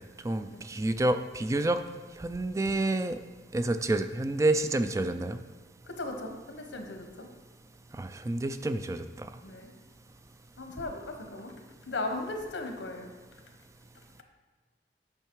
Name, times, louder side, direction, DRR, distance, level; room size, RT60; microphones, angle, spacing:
voice 1, 0.2-1.8 2.2-3.2 3.5-5.4 7.9-9.3, right 2 dB, 15° right, 9 dB, 0.3 m, -28 dB
voice 2, 5.9-7.3 9.4-9.7 10.6-11.5 11.9-13.1, left 2 dB, 90° left, 4 dB, 1.2 m, -37 dB
8.9 x 5.5 x 4.6 m, 1.5 s
head